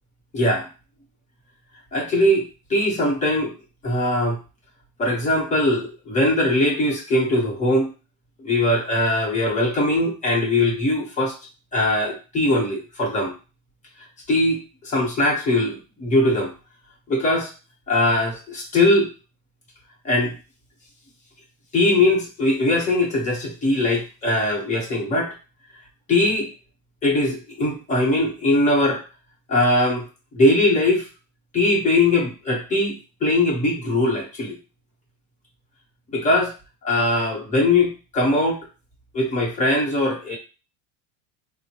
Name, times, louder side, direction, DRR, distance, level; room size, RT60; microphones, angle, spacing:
voice 1, 0.3-0.7 1.9-2.4 2.7-3.5 3.8-4.4 5.0-7.9 8.4-11.3 11.7-13.3 14.3-16.5 17.1-17.5 17.9-19.1 20.0-20.3 21.7-25.3 26.1-26.5 27.0-29.0 29.5-30.0 30.3-31.0 31.5-34.5 36.1-36.5 36.8-38.6 39.1-40.4, left 1 dB, 25° left, -1 dB, 1.1 m, -21 dB
4.0 x 2.1 x 2.9 m, 0.32 s
cardioid pair, 145°, 31 cm